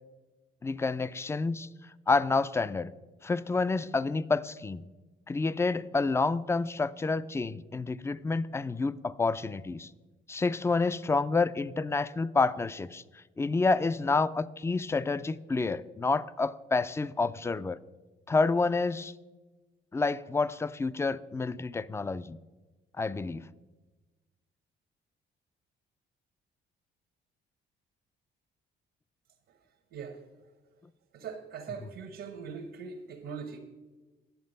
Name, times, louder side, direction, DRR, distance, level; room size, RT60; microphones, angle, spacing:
voice 1, 0.6-1.7 2.1-2.9 3.2-4.9 5.3-9.9 10.3-17.8 18.3-19.1 19.9-22.4 23.0-23.5, left 3 dB, 15° left, 17 dB, 0.3 m, -29 dB
voice 2, 29.9-30.2 31.1-33.6, right 6 dB, 75° right, 4 dB, 1.0 m, -41 dB
10.5 x 7.6 x 5.3 m, 1.2 s
cardioid pair, 90°, 20 cm